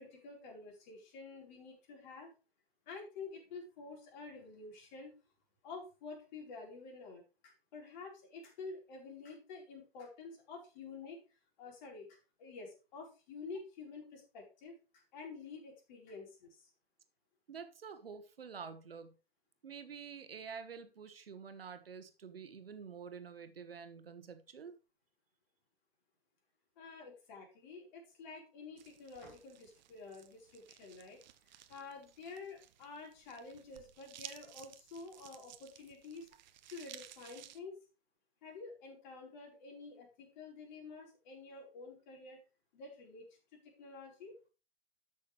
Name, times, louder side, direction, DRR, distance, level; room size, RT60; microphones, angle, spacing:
voice 1, 0.0-2.3 2.9-5.1 5.6-11.2 11.6-16.7 26.8-31.2 31.5-36.3 36.7-37.8 38.4-42.4 42.7-43.3 43.8-44.4, left 4 dB, 50° left, 0 dB, 4.3 m, -49 dB
voice 2, 17.5-19.1 19.6-24.8, right 6 dB, 70° right, 9 dB, 1.5 m, -48 dB
sound 1, 28.8-37.6, right 12 dB, 50° right, 1.0 m, -56 dB
13.0 x 6.4 x 3.2 m, 0.33 s
figure-of-eight pair, 105°, 30 cm